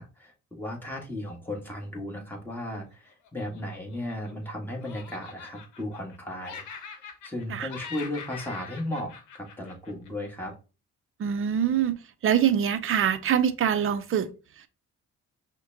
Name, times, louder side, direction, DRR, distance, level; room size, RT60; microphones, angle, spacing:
voice 1, 0.0-6.6 6.9-10.5, left 1 dB, 5° left, 1.4 m, -35 dB
Laughter, 3.2-4.5 4.8-6.2 6.4-7.4 7.7-10.3, left 6 dB, 80° left, 0.9 m, -43 dB
voice 2, 11.2-12.0 12.2-14.3, right 9 dB, 45° right, 0.6 m, -24 dB
5.5 x 2.2 x 2.7 m
cardioid pair, 90°, 30 cm